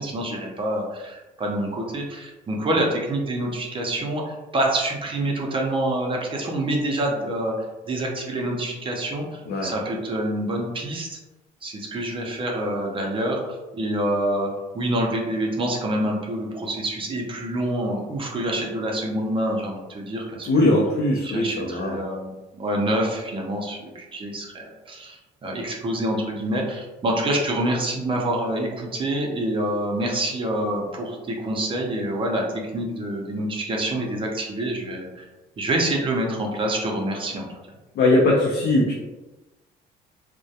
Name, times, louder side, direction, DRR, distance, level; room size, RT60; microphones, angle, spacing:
voice 1, 0.0-7.5 7.8-11.2 11.6-20.7 21.2-32.4 32.7-35.2 35.6-37.5, right 1 dB, 30° right, 0 dB, 0.5 m, -27 dB
voice 2, 20.5-22.0 38.0-38.9, left 2 dB, 65° left, -4 dB, 0.5 m, -20 dB
2.2 x 2.1 x 2.7 m, 1.1 s
cardioid pair, 110°, 17 cm